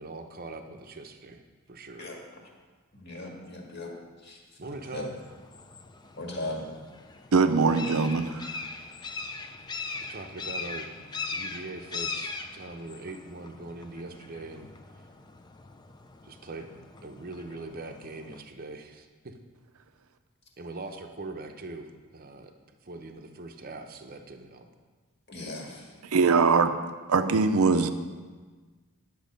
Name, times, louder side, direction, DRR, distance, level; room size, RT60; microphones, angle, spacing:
voice 1, 0.0-1.4 1.7-2.1 4.6-5.1 9.1-9.6 10.0-10.9 11.3-14.7 16.2-16.7 17.0-19.3 20.6-22.5 22.8-24.7, right 2 dB, 40° right, 5 dB, 0.7 m, -42 dB
voice 2, 2.9-3.9 4.2-4.4 4.9-5.1 6.2-6.6 25.3-25.9, left 2 dB, 50° left, 0 dB, 1.8 m, -37 dB
sound 1, 4.6-18.4, left 4 dB, 20° left, 0.4 m, -41 dB
voice 3, 7.3-8.5 26.1-26.7 27.1-27.9, right 4 dB, 75° right, 10 dB, 0.6 m, -22 dB
10.5 x 7.0 x 5.2 m, 1.4 s
head